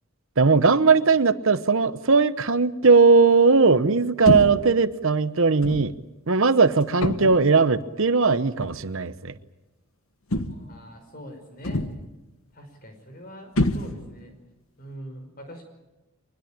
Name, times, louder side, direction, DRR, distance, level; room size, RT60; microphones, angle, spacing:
voice 1, 0.4-5.9 6.3-9.3, right 4 dB, 65° right, 13 dB, 0.9 m, -19 dB
sound 1, 4.3-4.7 5.6-5.9 7.0-7.5 8.6-8.8 10.3-10.8 11.6-12.2 13.6-14.2, left 1 dB, 70° left, 1.5 m, -26 dB
voice 2, 10.5-11.8 12.5-14.4 14.8-15.6, equal, 40° left, 5 dB, 5.5 m, -43 dB
24.5 x 21.0 x 8.9 m, 1.1 s
head